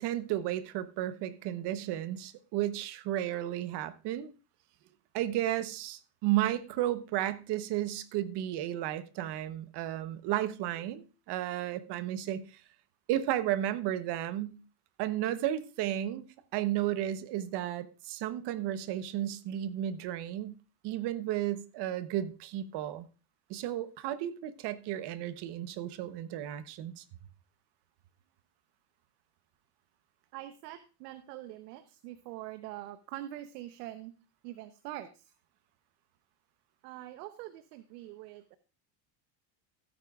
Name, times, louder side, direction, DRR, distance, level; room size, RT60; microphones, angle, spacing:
voice 1, 0.0-4.3 5.1-12.6 13.1-14.6 15.0-16.2 16.5-20.6 20.8-23.1 23.5-27.0, right 12 dB, 55° right, 1.0 m, -33 dB
voice 2, 30.3-34.1 34.4-35.3 36.8-38.6, right 14 dB, 90° right, 0.9 m, -44 dB
15.5 x 9.0 x 2.4 m
supercardioid pair, 120°, 48 cm